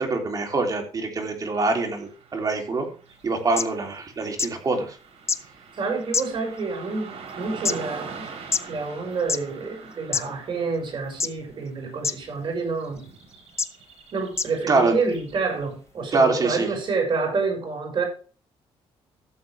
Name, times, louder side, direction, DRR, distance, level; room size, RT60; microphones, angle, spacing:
voice 1, 0.0-2.9 3.2-5.0 14.7-14.9 16.1-16.7, right 3 dB, 35° right, 2 dB, 3.3 m, -24 dB
Car passing by / Traffic noise roadway noise, 1.5-15.8, right 5 dB, 75° right, 4.3 m, -44 dB
sound 1, 3.2-3.3 3.6-3.7 4.4-4.5 5.3-5.4 6.1-6.6 7.3-7.7 8.5-8.6 9.2-9.4 10.1-10.2 11.2-11.5 12.0-12.1 12.9-13.0 13.6-13.7 14.3-14.5 15.3-15.4, left 4 dB, 25° left, 0.7 m, -24 dB
voice 2, 5.8-8.3 8.7-13.1 14.1-18.0, right 4 dB, 50° right, 2 dB, 5.9 m, -28 dB
14.0 x 7.7 x 3.5 m, 0.37 s
cardioid pair, 105°, 10 cm